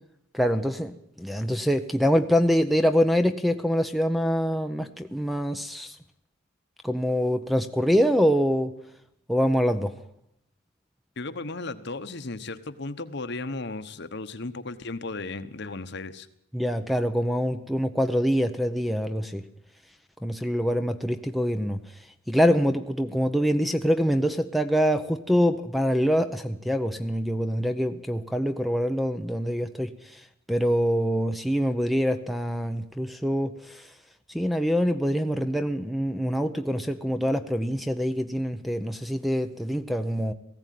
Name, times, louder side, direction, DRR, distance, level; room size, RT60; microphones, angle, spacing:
voice 1, 0.3-5.9 6.8-8.7 9.3-10.0 16.5-19.4 20.2-21.8 22.3-30.2 30.5-33.9 34.3-40.3, equal, ahead, 9 dB, 0.7 m, -25 dB
voice 2, 11.2-16.3, left 3 dB, 55° left, 11 dB, 1.1 m, -35 dB
18.5 x 16.0 x 9.3 m, 0.77 s
head